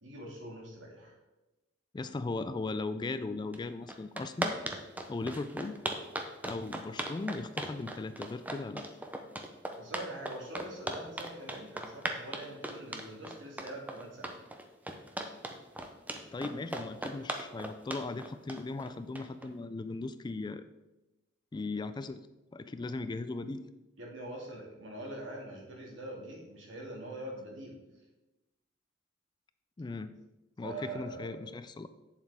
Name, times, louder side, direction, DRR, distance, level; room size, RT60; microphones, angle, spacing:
voice 1, 0.0-1.2 9.8-14.4 24.0-27.8 30.6-31.4, right 1 dB, 75° right, -1 dB, 2.2 m, -43 dB
voice 2, 1.9-4.5 5.1-5.8 6.4-8.9 16.3-20.7 21.5-22.2 22.5-23.7 29.8-30.2 30.6-31.9, left 3 dB, 25° left, 12 dB, 0.3 m, -38 dB
sound 1, 3.5-3.6 3.9-19.5, right 1 dB, 10° right, 0.7 m, -37 dB
8.1 x 7.4 x 3.6 m, 1.0 s
head